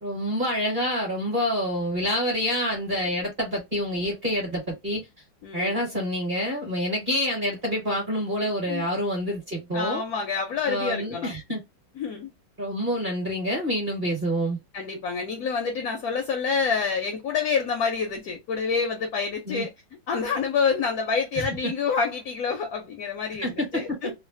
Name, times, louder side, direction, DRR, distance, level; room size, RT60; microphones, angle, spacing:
voice 1, 0.0-5.0 5.5-10.0 10.7-11.6 12.6-14.6 19.5-19.7 21.4-21.5 23.4-24.1, equal, 35° right, 0.9 m, -27 dB
voice 2, 5.4-5.8 8.7-8.9 9.7-11.3 12.0-12.3 14.7-19.7 20.1-24.1, left 5 dB, 75° left, 0.8 m, -27 dB
3.2 x 2.1 x 2.5 m
omnidirectional pair, 2.2 m